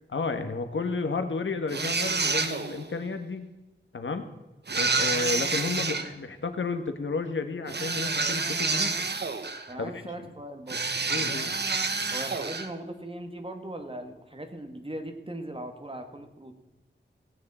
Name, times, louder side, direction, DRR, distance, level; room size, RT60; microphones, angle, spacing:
voice 1, 0.1-3.5 3.9-4.3 4.8-9.0 9.8-9.9 11.1-11.5, left 4 dB, 85° left, 8 dB, 1.4 m, -32 dB
sound 1, 1.7-2.9 4.7-6.1 7.7-9.7 10.7-12.7, right 4 dB, 60° right, 1.1 m, -28 dB
voice 2, 9.7-10.9 12.1-16.6, right 1 dB, 30° right, 5 dB, 1.9 m, -39 dB
17.5 x 9.5 x 4.3 m, 1.1 s
wide cardioid pair, 80°, 19 cm